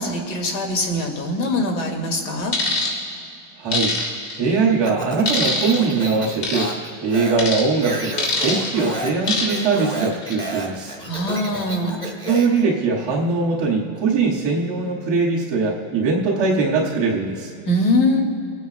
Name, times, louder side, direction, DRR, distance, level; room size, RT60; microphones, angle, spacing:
voice 1, 0.0-2.5 11.1-12.0 17.7-18.2, left 1 dB, 80° left, 2 dB, 2.4 m, -22 dB
sound 1, 2.5-2.9 3.7-4.4 5.3-5.8 6.4-6.7 7.4-7.6 8.2-8.7 9.3-9.7 10.1-10.3, left 3 dB, 50° left, 3.1 m, -23 dB
voice 2, 3.6-3.9 4.4-6.7 7.0-8.1 8.4-11.0 12.2-17.5, right 4 dB, 10° right, -10 dB, 0.3 m, -21 dB
Speech, 4.8-12.6, right 1 dB, 10° left, 0.9 m, -31 dB
27.5 x 9.3 x 2.3 m, 2.5 s
supercardioid pair, 165°, 49 cm